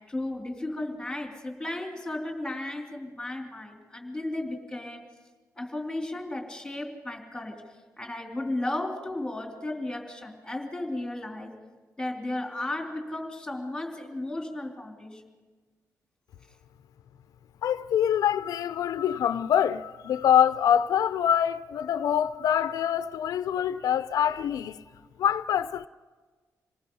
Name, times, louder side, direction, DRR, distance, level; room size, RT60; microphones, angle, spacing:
voice 1, 0.0-5.0 5.5-11.6 12.0-15.2 24.9-25.0, left 1 dB, 10° left, 3.4 m, -34 dB
voice 2, 17.6-24.8 25.2-25.9, left 9 dB, 85° left, 0.6 m, -25 dB
27.0 x 19.0 x 5.5 m
wide cardioid pair, 140°, 6 cm